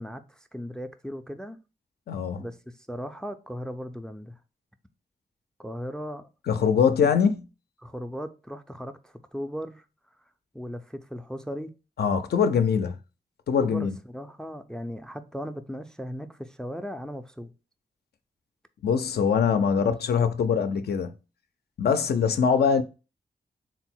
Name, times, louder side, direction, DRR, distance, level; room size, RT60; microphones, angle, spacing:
voice 1, 0.0-1.6 2.4-4.4 5.6-6.3 7.0-7.1 7.8-9.8 10.5-11.7 13.6-17.5 19.7-20.2, equal, 5° left, 0.3 m, -37 dB
voice 2, 2.1-2.5 6.5-7.5 12.0-13.0 13.5-14.0 18.8-21.1 21.8-22.8, left 6 dB, 75° left, 0.4 m, -23 dB
3.8 x 2.0 x 4.3 m
wide cardioid pair, 95°, 17 cm